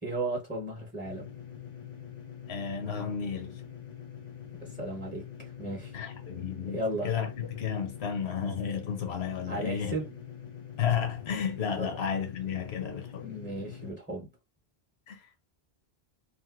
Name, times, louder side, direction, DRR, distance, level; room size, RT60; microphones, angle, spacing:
voice 1, 0.0-1.3 4.6-5.9 6.7-7.1 9.5-10.2 11.8-11.9 13.2-14.3, right 2 dB, 10° right, 0.8 m, -35 dB
sound 1, 1.0-13.9, left 9 dB, 45° left, 0.7 m, -45 dB
voice 2, 2.5-3.6 5.9-6.8 7.0-9.9 10.8-13.3 15.1-15.3, left 7 dB, 75° left, 1.1 m, -32 dB
3.2 x 2.6 x 2.4 m
omnidirectional pair, 1.1 m